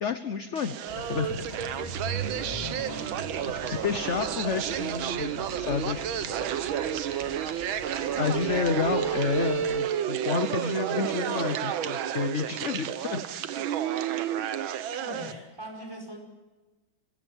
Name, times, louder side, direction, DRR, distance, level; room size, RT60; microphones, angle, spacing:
voice 1, 0.0-1.4 3.5-6.3 8.1-13.3, left 6 dB, 50° left, 10 dB, 0.9 m, -30 dB
sound 1, 0.6-15.3, right 10 dB, 85° right, 1.7 m, -31 dB
Engine, 0.9-9.8, right 2 dB, 20° left, 3.0 m, -40 dB
voice 2, 2.5-3.1 14.9-16.2, equal, 10° right, 2 dB, 5.3 m, -41 dB
sound 2, 3.9-10.7, right 3 dB, 30° right, 7.3 m, -56 dB
25.0 x 16.0 x 7.3 m, 1.2 s
omnidirectional pair, 2.1 m